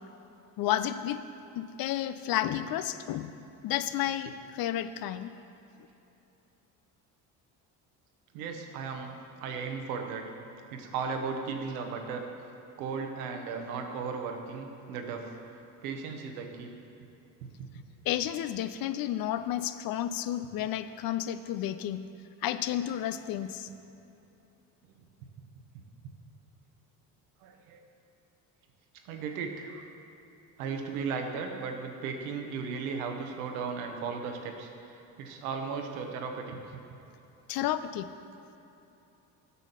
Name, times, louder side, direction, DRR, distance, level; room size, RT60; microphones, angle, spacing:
voice 1, 0.6-1.2 1.6-3.3 3.6-5.3 18.1-22.1 22.4-23.7 37.5-38.1, left 12 dB, 55° left, 12 dB, 0.6 m, -31 dB
voice 2, 8.3-9.1 9.4-10.2 10.7-12.2 12.8-15.4 15.8-16.7 17.6-17.7 27.4-27.8 29.0-29.8 30.6-36.8, right 5 dB, 90° right, 4 dB, 1.0 m, -36 dB
8.2 x 5.7 x 6.8 m, 2.9 s
supercardioid pair, 75°, 42 cm